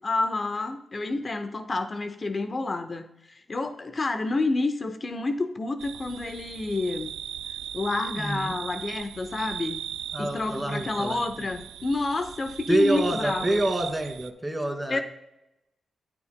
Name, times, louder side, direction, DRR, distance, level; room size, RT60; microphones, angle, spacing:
voice 1, 0.0-7.1 7.7-9.8 10.2-13.6 14.9-15.0, left 3 dB, 45° left, 8 dB, 0.8 m, -29 dB
sound 1, 5.8-14.3, right 9 dB, 90° right, 0.3 m, -38 dB
voice 2, 8.2-8.6 10.1-11.5 12.7-15.0, right 1 dB, 15° right, 3 dB, 2.3 m, -27 dB
17.5 x 6.0 x 2.2 m, 0.86 s
supercardioid pair, 45°, 0 cm